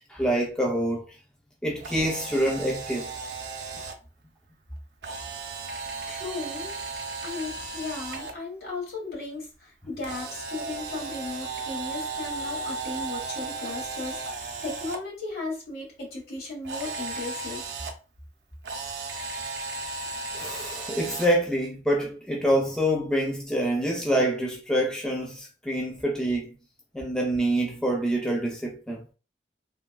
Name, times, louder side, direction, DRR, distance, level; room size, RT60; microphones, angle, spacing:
voice 1, 0.1-1.0 1.6-3.1 20.3-26.5 26.9-29.0, right 1 dB, 5° left, 0.3 m, -26 dB
Camera, 1.7-3.9 5.0-8.3 10.0-15.0 16.6-17.9 18.6-21.3, right 3 dB, 70° right, 0.5 m, -35 dB
voice 2, 6.1-6.8 7.2-17.8, left 3 dB, 60° left, 1.5 m, -36 dB
3.4 x 2.2 x 2.2 m
head